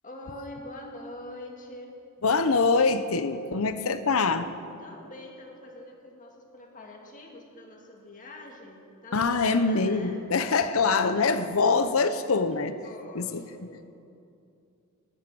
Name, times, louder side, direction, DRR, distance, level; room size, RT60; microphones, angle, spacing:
voice 1, 0.0-2.0 4.8-10.2 12.8-13.8, left 1 dB, 40° left, 1 dB, 1.9 m, -44 dB
voice 2, 2.2-4.5 9.1-12.8 13.1-13.4, left 4 dB, 70° left, 11 dB, 0.8 m, -24 dB
19.0 x 9.4 x 6.2 m, 2.6 s
head